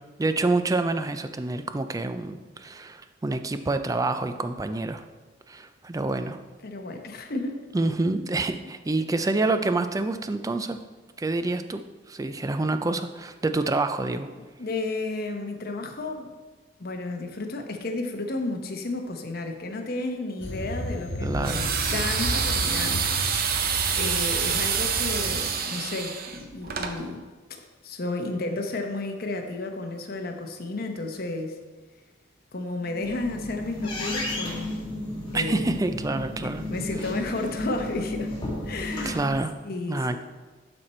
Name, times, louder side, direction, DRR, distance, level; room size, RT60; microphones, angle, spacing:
voice 1, 0.2-5.0 5.5-6.4 7.7-10.8 11.2-11.8 12.1-14.3 21.2-21.7 35.3-36.6 39.1-39.5 39.9-40.2, right 2 dB, 20° right, 9 dB, 0.4 m, -27 dB
voice 2, 6.6-7.6 14.4-16.3 16.8-23.0 24.0-27.2 27.6-31.6 32.5-34.8 35.3-35.7 36.4-38.3 38.6-39.2 39.6-40.2, left 2 dB, 50° left, 3 dB, 0.9 m, -32 dB
sound 1, 20.4-25.4, left 1 dB, 90° left, 1.1 m, -33 dB
sound 2, 21.4-27.0, right 6 dB, 50° right, 0.7 m, -27 dB
sound 3, 32.8-39.3, left 1 dB, 30° left, 2.1 m, -33 dB
11.5 x 4.4 x 4.3 m, 1.3 s
head